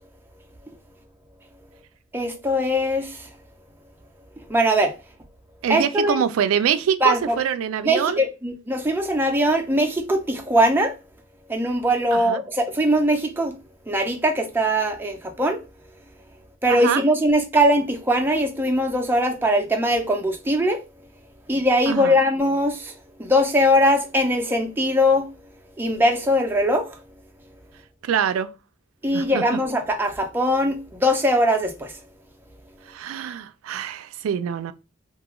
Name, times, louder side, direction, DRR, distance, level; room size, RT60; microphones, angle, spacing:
voice 1, 2.1-3.3 4.5-5.0 5.7-6.2 7.0-7.4 7.8-11.0 11.5-13.6 13.9-15.6 16.6-20.8 21.5-22.9 23.2-25.3 25.8-27.0 29.0-32.0, equal, 10° right, 0.4 m, -21 dB
voice 2, 5.6-8.2 12.1-12.4 16.7-17.0 21.9-22.2 28.0-28.5 29.1-29.6 32.9-34.7, right 8 dB, 75° right, 0.3 m, -25 dB
2.4 x 2.3 x 2.9 m
head